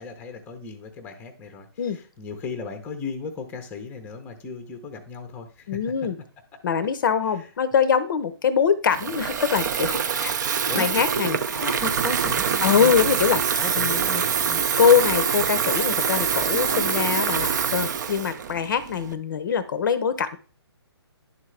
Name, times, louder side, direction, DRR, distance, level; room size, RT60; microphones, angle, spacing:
voice 1, 0.0-5.8 7.3-7.5 10.7-10.9 11.5-12.9 13.5-14.6, left 3 dB, 10° left, 7 dB, 0.6 m, -36 dB
voice 2, 5.7-6.2 6.6-10.4 10.7-11.4 12.6-13.4 13.8-14.0 14.8-20.4, left 7 dB, 50° left, 13 dB, 0.6 m, -23 dB
Water tap faucet / Fill (with liquid), 8.9-19.1, right 7 dB, 45° right, 0.5 m, -25 dB
10.5 x 3.7 x 3.2 m, 0.37 s
hypercardioid pair, 150°, 14 cm